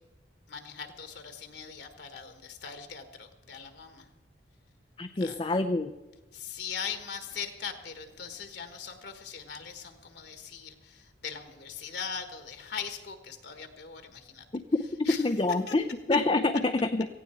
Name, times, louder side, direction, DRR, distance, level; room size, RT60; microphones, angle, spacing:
voice 1, 0.5-4.1 5.2-5.5 6.3-14.4 15.0-15.3 15.7-15.8, left 6 dB, 60° left, 7 dB, 1.4 m, -40 dB
voice 2, 5.0-5.9 15.2-17.1, left 2 dB, 25° left, 6 dB, 0.5 m, -27 dB
17.5 x 16.0 x 4.5 m, 1.1 s
head